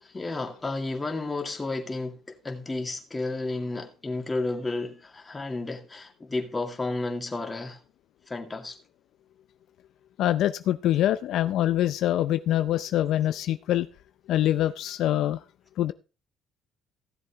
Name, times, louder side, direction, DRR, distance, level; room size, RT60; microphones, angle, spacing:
voice 1, 0.0-7.8 8.3-8.8, left 2 dB, 20° left, 2.2 m, -32 dB
voice 2, 10.2-13.9 14.3-15.4 15.8-15.9, left 12 dB, 70° left, 0.5 m, -24 dB
16.0 x 7.6 x 3.5 m
cardioid pair, 95°, 0 cm